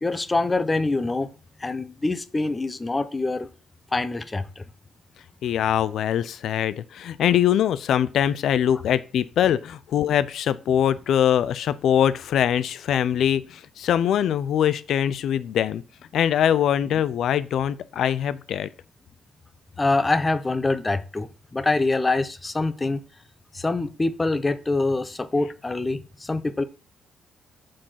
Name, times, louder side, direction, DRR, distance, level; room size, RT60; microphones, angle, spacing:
voice 1, 0.0-1.3 1.6-3.5 3.9-4.6 19.8-23.0 23.5-26.6, left 2 dB, 20° left, 0.8 m, -25 dB
voice 2, 5.4-15.8 16.1-18.7, left 10 dB, 70° left, 0.6 m, -22 dB
7.6 x 4.5 x 5.8 m
cardioid pair, 90°, 0 cm